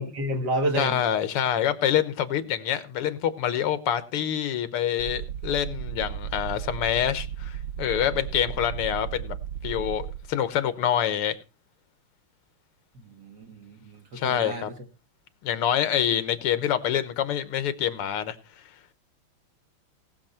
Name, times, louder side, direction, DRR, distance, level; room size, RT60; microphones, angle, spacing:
voice 1, 0.0-1.1 12.9-14.7, right 1 dB, 50° right, 2.3 m, -30 dB
voice 2, 0.8-9.4 9.6-11.4 14.2-14.7 15.4-18.4, left 10 dB, 85° left, 2.0 m, -26 dB
sound 1, 5.0-10.3, right 9 dB, 65° right, 1.3 m, -35 dB
19.0 x 6.9 x 4.4 m
omnidirectional pair, 2.4 m